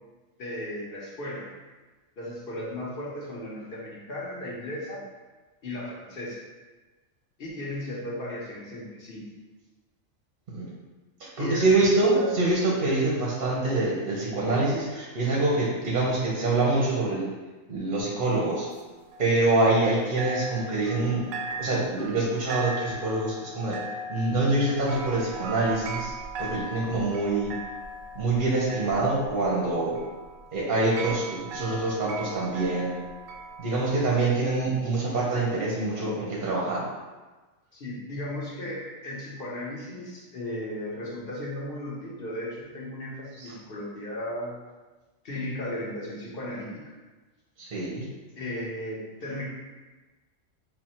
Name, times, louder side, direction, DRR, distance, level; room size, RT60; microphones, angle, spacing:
voice 1, 0.4-1.5 2.2-5.0 5.6-6.4 7.4-9.3 11.4-12.3 37.7-44.6 45.2-46.8 48.4-49.4, left 1 dB, 50° left, -5 dB, 1.1 m, -35 dB
voice 2, 11.2-17.2 17.7-18.7 19.2-21.2 21.6-23.8 24.1-26.1 26.4-27.5 28.1-30.0 30.5-33.0 33.6-36.8 43.4-43.5 47.6-48.0, right 2 dB, 50° right, -4 dB, 0.8 m, -25 dB
sound 1, 18.0-19.9 20.2-34.1, right 1 dB, 80° right, 1.0 m, -39 dB
4.0 x 2.1 x 4.2 m, 1.2 s
omnidirectional pair, 1.4 m